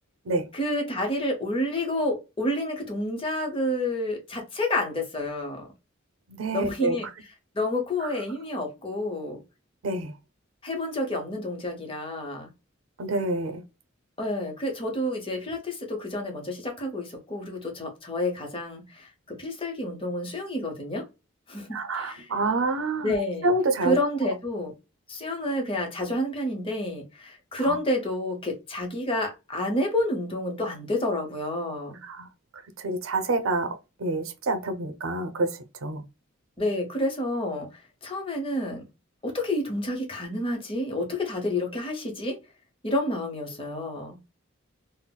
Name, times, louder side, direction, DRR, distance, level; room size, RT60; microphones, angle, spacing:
voice 1, 0.5-5.7 6.5-7.1 7.5-9.4 10.6-12.5 14.2-21.0 21.5-22.3 23.0-23.5 23.8-24.7 25.1-32.0 36.6-38.8 39.2-42.4 42.8-44.2, left 1 dB, 25° left, 0.8 m, -29 dB
voice 2, 6.3-7.0 8.0-8.1 9.8-10.1 13.0-13.6 21.7-24.0 24.2-24.3 27.6-27.8 32.0-32.3 32.8-36.0, right 2 dB, 85° right, 0.5 m, -28 dB
3.8 x 2.0 x 2.2 m
head